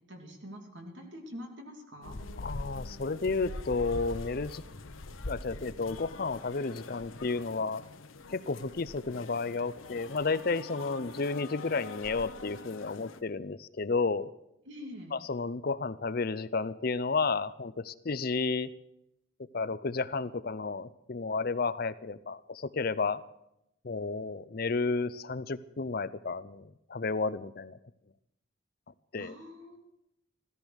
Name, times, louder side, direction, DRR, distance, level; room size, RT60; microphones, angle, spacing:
voice 1, 0.1-2.2 14.7-15.1 29.2-29.8, equal, 65° right, 3 dB, 2.7 m, -45 dB
sound 1, 2.0-13.2, left 2 dB, 80° left, 1.0 m, -44 dB
voice 2, 2.4-4.6 5.3-7.8 8.3-14.3 15.1-18.7 19.5-23.2 23.8-27.8 29.1-29.4, left 4 dB, 45° left, 15 dB, 0.6 m, -32 dB
15.0 x 14.0 x 6.4 m, 0.81 s
head